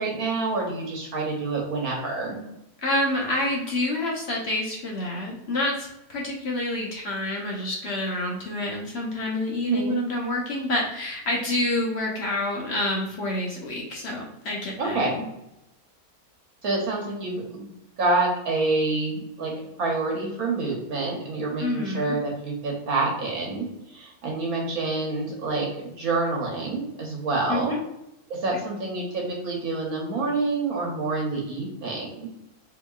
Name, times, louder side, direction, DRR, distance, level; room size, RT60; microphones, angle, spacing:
voice 1, 0.0-2.4 9.6-10.0 14.8-15.1 16.6-17.7 18.0-19.5 19.8-27.8 28.3-32.3, right 3 dB, 70° right, -2 dB, 1.3 m, -27 dB
voice 2, 2.8-15.3 21.6-22.2 27.5-27.8, left 1 dB, 55° left, -2 dB, 0.8 m, -28 dB
3.8 x 3.0 x 2.3 m, 0.86 s
omnidirectional pair, 1.6 m